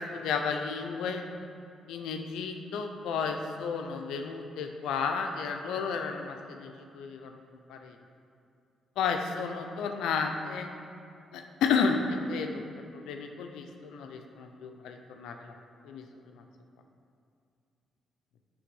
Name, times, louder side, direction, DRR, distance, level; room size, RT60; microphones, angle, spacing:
voice 1, 0.1-1.2 1.9-7.4 7.7-7.9 9.0-10.7 11.3-12.6 12.9-15.5 15.8-16.0 16.3-16.4, left 5 dB, 85° left, 4 dB, 0.5 m, -32 dB
9.7 x 3.5 x 5.3 m, 2.4 s
cardioid pair, 75°, 0 cm